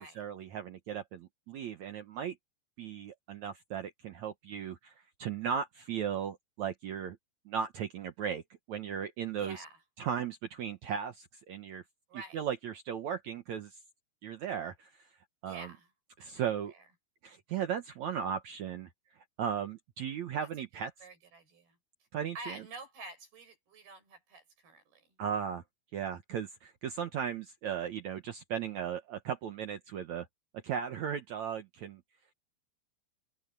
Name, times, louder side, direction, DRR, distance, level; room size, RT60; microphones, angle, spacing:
voice 1, 0.0-2.4 2.8-4.9 5.2-7.2 7.5-8.4 8.7-9.6 10.0-11.8 12.3-13.7 14.2-14.9 15.4-15.7 16.2-16.7 17.2-18.9 19.4-20.9 22.1-22.6 25.2-25.6 25.9-30.3 30.6-32.0, right 8 dB, 65° right, 2.0 m, -36 dB
voice 2, 9.4-9.8 12.1-12.4 15.4-15.9 16.2-16.8 21.0-21.8 22.3-25.0, right 3 dB, 80° right, 8.3 m, -48 dB
open air
omnidirectional pair, 4.4 m